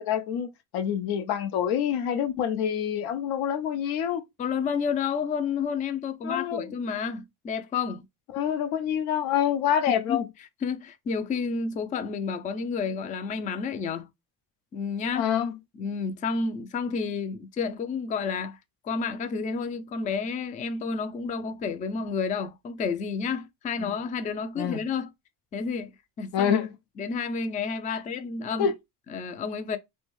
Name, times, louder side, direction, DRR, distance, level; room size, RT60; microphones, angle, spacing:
voice 1, 0.0-4.2 6.2-6.6 8.3-10.3 15.1-15.5 23.8-23.9 24.6-24.8 26.3-26.7 27.9-28.0 28.6-28.7, left 9 dB, 75° left, 0.6 m, -27 dB
voice 2, 4.4-8.0 9.9-10.2 10.6-14.1 14.7-15.3 15.8-18.6 18.8-25.1 25.5-25.9 26.2-26.6 27.0-28.7 29.1-29.8, left 5 dB, 20° left, 0.3 m, -30 dB
2.5 x 2.2 x 3.0 m
supercardioid pair, 80°, 39 cm